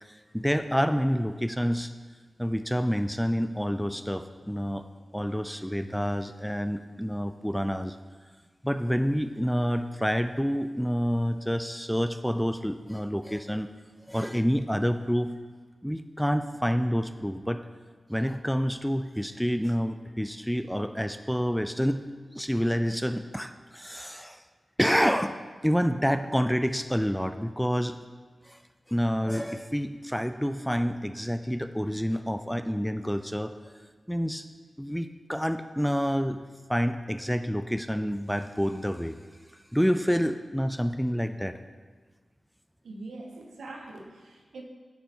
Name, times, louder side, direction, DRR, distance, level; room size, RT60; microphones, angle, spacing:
voice 1, 0.0-1.9 2.4-4.9 5.1-8.0 8.6-13.7 14.1-15.3 15.8-17.6 18.1-22.0 22.3-24.4 24.8-25.3 25.6-28.0 28.5-28.6 28.9-33.7 34.1-34.4 34.8-36.4 36.7-39.2 39.7-41.6, equal, ahead, 9 dB, 0.4 m, -28 dB
voice 2, 42.8-44.6, right 2 dB, 90° right, 1 dB, 1.0 m, -43 dB
10.0 x 4.4 x 4.3 m, 1.5 s
cardioid pair, 45°, 0 cm